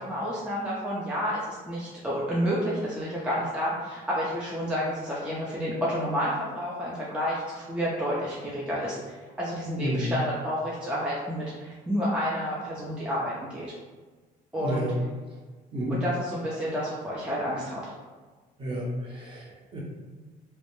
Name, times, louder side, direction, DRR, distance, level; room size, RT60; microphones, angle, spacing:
voice 1, 0.0-13.7 14.5-14.9 15.9-17.8, equal, 5° right, -6 dB, 0.4 m, -30 dB
voice 2, 9.8-10.1 14.6-15.0 15.7-16.0 18.6-19.8, equal, 30° right, -4 dB, 0.7 m, -31 dB
2.2 x 2.0 x 2.9 m, 1.3 s
cardioid pair, 110°, 17 cm